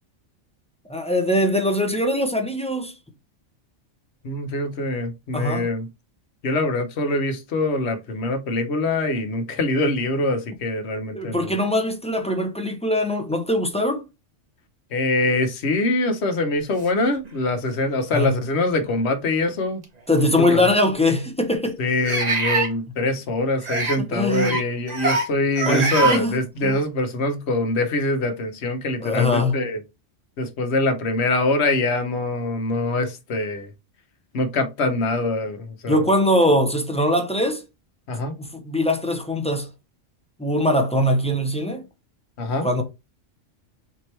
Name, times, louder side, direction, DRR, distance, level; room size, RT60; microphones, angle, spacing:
voice 1, 0.9-2.9 5.3-5.7 11.1-14.0 18.1-18.3 20.1-21.8 24.1-24.6 25.7-26.8 29.0-29.6 35.9-37.6 38.4-39.7 40.4-41.8 42.6-42.8, left 1 dB, 10° left, 0.4 m, -22 dB
voice 2, 4.2-5.9 6.4-11.5 14.9-19.8 20.4-20.6 21.8-29.8 30.4-33.7 34.3-36.1 38.1-38.4 42.4-42.7, left 2 dB, 65° left, 1.1 m, -24 dB
sound 1, 17.2-17.3 18.1-18.2 19.8-19.9 22.0-22.7 23.6-24.0 24.3-24.6 24.9-25.3 25.5-26.2, right 4 dB, 40° right, 0.9 m, -23 dB
4.3 x 3.0 x 3.1 m
omnidirectional pair, 1.2 m